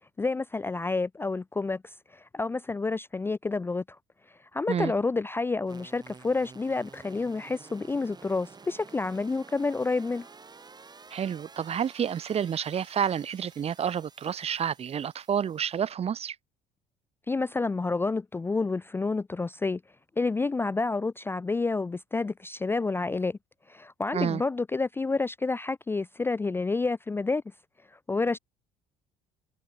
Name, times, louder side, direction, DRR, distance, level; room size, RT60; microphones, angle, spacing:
voice 1, 0.2-4.0 4.5-10.3 17.3-19.8 20.2-23.4 23.7-27.4 28.1-28.4, left 3 dB, 15° left, 0.4 m, -29 dB
sound 1, 5.7-15.9, right 4 dB, 25° right, 5.7 m, -51 dB
voice 2, 11.1-16.3 24.1-24.4, right 8 dB, 40° right, 1.2 m, -29 dB
supercardioid pair, 85°, 16 cm